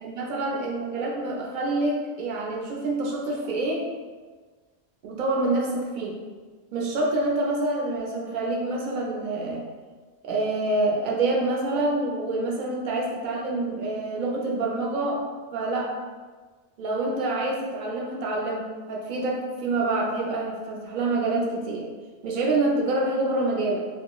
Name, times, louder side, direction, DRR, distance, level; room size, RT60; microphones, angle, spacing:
voice 1, 0.0-3.8 5.0-6.2 6.7-9.6 10.2-15.2 15.5-15.9 16.8-21.9 22.2-23.9, right 2 dB, 60° right, -2 dB, 0.6 m, -27 dB
2.8 x 2.4 x 2.2 m, 1.4 s
omnidirectional pair, 1.0 m